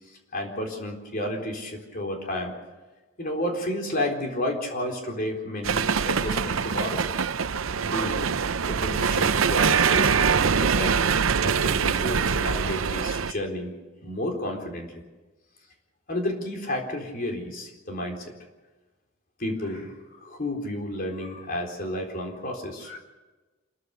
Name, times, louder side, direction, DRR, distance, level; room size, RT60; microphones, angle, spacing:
voice 1, 0.3-2.5 3.2-7.0 7.8-8.3 8.6-11.0 11.4-13.8 14.0-15.0 16.1-18.2 19.4-19.9 20.2-23.0, left 1 dB, 45° left, 1 dB, 4.1 m, -31 dB
sound 1, 5.6-13.3, right 6 dB, 80° right, 0.7 m, -23 dB
27.5 x 14.0 x 6.7 m, 1.2 s
head